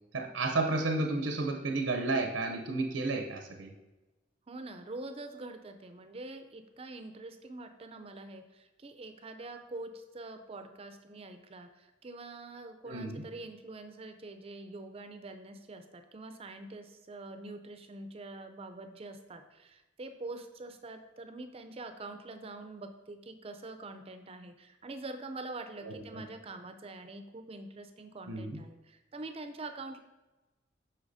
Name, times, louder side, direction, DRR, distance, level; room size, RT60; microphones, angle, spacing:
voice 1, 0.1-3.7 12.9-13.3 25.8-26.2 28.3-28.6, right 2 dB, 85° right, 3 dB, 0.6 m, -32 dB
voice 2, 4.5-30.0, right 2 dB, 30° right, 8 dB, 0.5 m, -45 dB
8.1 x 5.7 x 2.6 m, 1.1 s
head